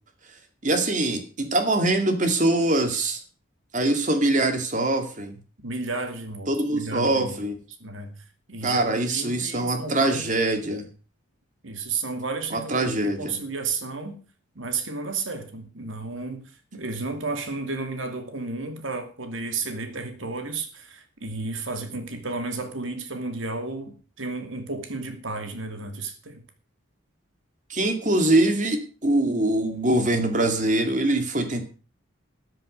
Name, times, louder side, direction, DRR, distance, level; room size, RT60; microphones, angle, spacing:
voice 1, 0.6-3.2 3.7-5.3 6.5-7.6 8.6-10.9 12.5-13.3 27.7-31.6, right 2 dB, 40° right, 2.3 m, -23 dB
voice 2, 5.6-7.4 7.8-8.1 8.5-10.3 11.6-14.2 14.5-26.4, right 3 dB, 75° right, 2.6 m, -32 dB
13.5 x 7.8 x 6.6 m
head